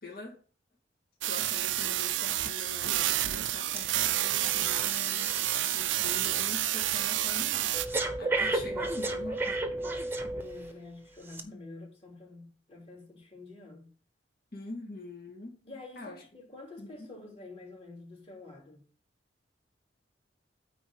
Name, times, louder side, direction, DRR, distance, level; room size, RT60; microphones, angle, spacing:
voice 1, 0.0-0.4 1.3-7.7 8.2-9.6 10.2-10.3 11.4-11.6 14.5-15.6 16.0-16.2 16.8-17.1, left 2 dB, 55° left, 1.9 m, -44 dB
sound 1, 1.2-7.9, right 13 dB, 90° right, 0.5 m, -29 dB
Breathing, 3.8-3.9 4.3-10.7 11.3-11.4, right 2 dB, 10° right, 0.9 m, -34 dB
voice 2, 10.3-13.9 15.6-18.8, left 2 dB, 35° left, 3.1 m, -48 dB
9.4 x 3.8 x 6.3 m
head